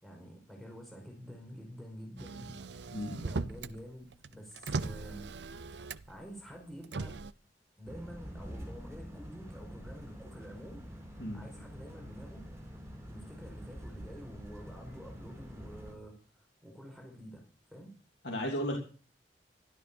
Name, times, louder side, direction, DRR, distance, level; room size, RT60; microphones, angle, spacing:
voice 1, 0.0-2.5 3.2-5.3 5.8-7.1 7.8-10.9 11.3-12.4 13.1-17.4 17.7-17.9, equal, ahead, 0 dB, 5.0 m, -48 dB
Motor vehicle (road), 2.2-3.8 4.1-6.2 6.8-7.3, right 3 dB, 80° right, 0.7 m, -38 dB
sound 1, 7.9-15.9, equal, 15° right, 4.4 m, -46 dB
voice 2, 18.2-18.8, equal, 80° left, 0 dB, 3.2 m, -34 dB
13.0 x 12.5 x 7.0 m, 0.39 s
head